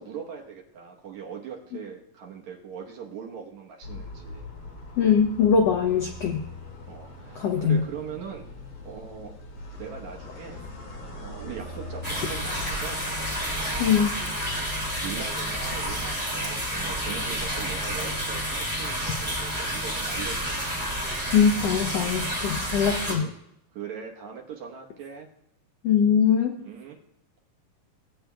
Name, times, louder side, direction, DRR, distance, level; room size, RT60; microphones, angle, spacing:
voice 1, 0.0-4.5 6.9-8.5 8.8-9.4 9.8-10.6 11.2-13.0 13.7-14.0 14.8-20.6 23.1-23.3 23.7-25.3 26.6-27.0, right 7 dB, 65° right, 0 dB, 2.2 m, -40 dB
sound 1, 3.8-22.9, left 2 dB, 45° left, 2.3 m, -42 dB
voice 2, 5.0-6.4 7.3-7.8 13.8-14.2 21.3-23.2 25.8-26.6, left 7 dB, 80° left, 3 dB, 1.4 m, -22 dB
sound 2, 12.0-23.1, equal, 5° right, 1.8 m, -30 dB
17.5 x 9.0 x 2.3 m, 0.78 s
omnidirectional pair, 3.8 m